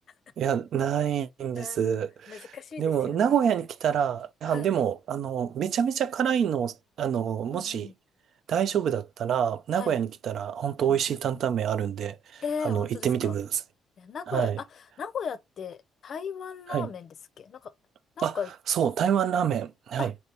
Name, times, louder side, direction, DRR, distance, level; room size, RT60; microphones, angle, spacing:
voice 1, 0.4-7.9 8.5-13.6 14.3-14.6 16.7-16.9 18.2-18.4 18.7-20.1, right 8 dB, 65° right, 0.3 m, -27 dB
voice 2, 1.5-3.4 4.5-4.7 7.5-7.9 9.7-10.0 10.8-11.0 12.4-13.4 14.0-17.7 18.2-18.5 20.0-20.1, left 6 dB, 50° left, 0.5 m, -37 dB
4.1 x 3.2 x 2.8 m
cardioid pair, 105°, 0 cm